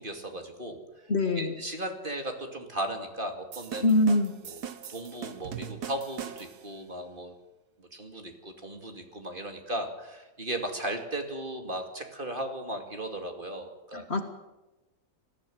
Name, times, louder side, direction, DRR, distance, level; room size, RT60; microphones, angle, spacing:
voice 1, 0.0-1.1 1.4-3.9 4.4-4.6 4.9-7.3 7.8-14.1, right 1 dB, 30° right, 4 dB, 2.6 m, -36 dB
voice 2, 1.1-1.5 3.8-4.3 13.9-14.2, left 2 dB, 40° left, 6 dB, 1.9 m, -24 dB
sound 1, 3.5-6.7, right 8 dB, 75° right, 1.7 m, -41 dB
20.5 x 15.0 x 9.3 m, 1.1 s
omnidirectional pair, 1.7 m